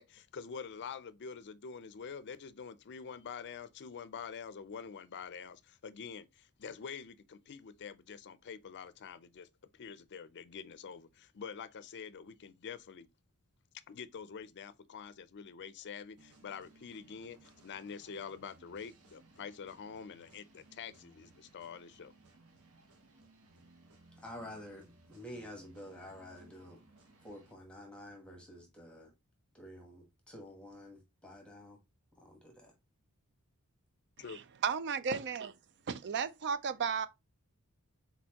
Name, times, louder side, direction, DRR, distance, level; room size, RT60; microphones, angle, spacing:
voice 1, 0.0-13.1 13.9-22.1 34.2-34.4, left 6 dB, 50° left, 0.5 m, -46 dB
sound 1, 16.2-27.5, right 2 dB, 75° right, 1.2 m, -62 dB
voice 2, 24.2-26.8 27.2-29.1 29.5-31.8 32.2-32.7, left 1 dB, 5° left, 1.2 m, -49 dB
voice 3, 34.6-35.5 35.9-37.1, right 6 dB, 50° right, 0.5 m, -33 dB
4.3 x 4.0 x 2.8 m
head